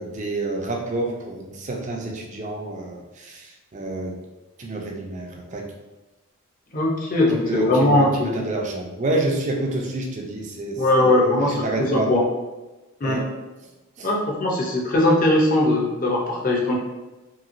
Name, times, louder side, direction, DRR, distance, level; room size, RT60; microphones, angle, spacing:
voice 1, 0.0-4.2 4.6-5.7 7.3-12.1 13.0-13.3 14.0-14.1, right 2 dB, 35° right, 0 dB, 0.4 m, -28 dB
voice 2, 6.7-8.3 10.8-12.2 13.0-13.2 14.0-16.7, left 1 dB, 40° left, -2 dB, 0.5 m, -20 dB
3.0 x 2.8 x 2.5 m, 1.1 s
head